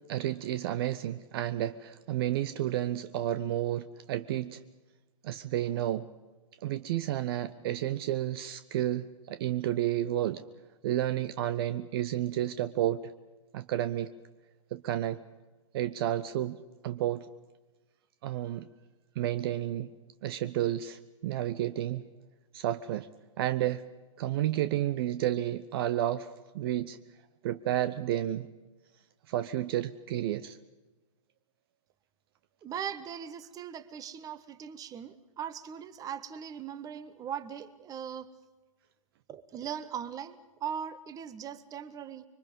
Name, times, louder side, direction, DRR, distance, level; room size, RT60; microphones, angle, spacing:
voice 1, 0.1-4.6 5.2-6.1 6.6-10.4 10.8-13.1 13.5-14.1 14.7-15.2 15.7-17.3 18.2-18.7 19.2-19.9 20.2-22.0 22.5-23.1 23.4-23.8 24.2-27.0 27.4-28.5 29.3-30.6, right 12 dB, 45° right, 13 dB, 0.7 m, -31 dB
voice 2, 32.6-38.3 39.3-42.2, right 8 dB, 20° right, 16 dB, 1.1 m, -39 dB
25.0 x 24.0 x 5.4 m, 1.2 s
figure-of-eight pair, 110°, 17 cm